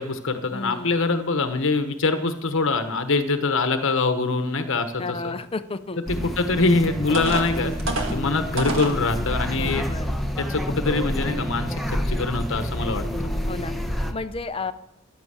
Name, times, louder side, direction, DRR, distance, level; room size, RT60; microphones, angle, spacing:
voice 1, 0.0-5.3 6.2-7.7 8.1-9.9 10.4-13.0, left 3 dB, 60° left, 7 dB, 1.1 m, -24 dB
voice 2, 0.5-1.1 5.0-6.0 9.5-10.1 13.5-13.7 14.1-14.7, left 3 dB, 25° left, 11 dB, 0.6 m, -32 dB
sound 1, 6.1-14.1, equal, ahead, 1.1 m, -28 dB
sound 2, 6.6-6.7 7.1-9.0 9.7-9.8 10.3-10.5, right 2 dB, 60° right, 2.0 m, -29 dB
14.5 x 10.5 x 6.4 m, 0.85 s
head